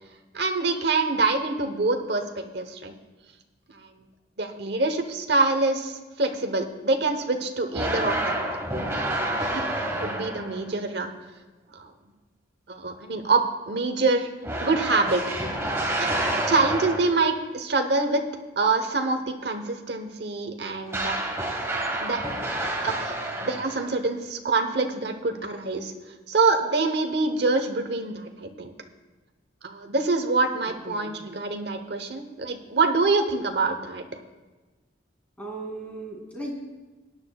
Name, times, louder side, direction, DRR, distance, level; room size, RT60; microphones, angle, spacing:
voice 1, 0.3-2.9 3.7-4.0 4.4-8.5 8.9-11.1 11.8-11.9 12.7-14.3 14.6-15.2 16.0-18.2 18.6-21.2 22.0-22.5 22.8-25.9 26.3-28.7 29.6-34.0, right 3 dB, 55° right, 6 dB, 1.0 m, -26 dB
sound 1, 7.7-10.7 14.4-17.3 20.9-24.0, right 1 dB, 15° right, 1.2 m, -29 dB
voice 2, 30.6-31.1 35.4-36.5, right 2 dB, 5° left, -2 dB, 2.5 m, -37 dB
19.5 x 9.9 x 2.3 m, 1.2 s
head